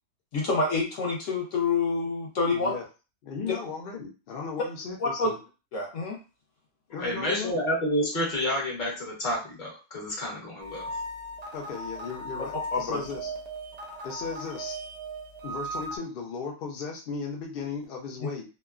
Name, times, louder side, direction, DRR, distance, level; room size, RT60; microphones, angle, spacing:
voice 1, 0.3-2.7 3.4-3.5 5.0-5.3 5.7-6.2 12.7-13.0, left 3 dB, 60° left, -2 dB, 1.0 m, -27 dB
voice 2, 2.5-2.8 3.2-5.4 6.9-7.6 11.5-13.3 14.0-14.8 15.4-18.4, left 5 dB, 80° left, 0 dB, 0.5 m, -36 dB
voice 3, 7.0-10.9, equal, 35° left, -3 dB, 1.0 m, -29 dB
sound 1, 10.6-16.0, right 1 dB, 60° right, 0.6 m, -37 dB
2.9 x 2.2 x 2.3 m, 0.33 s
omnidirectional pair, 1.6 m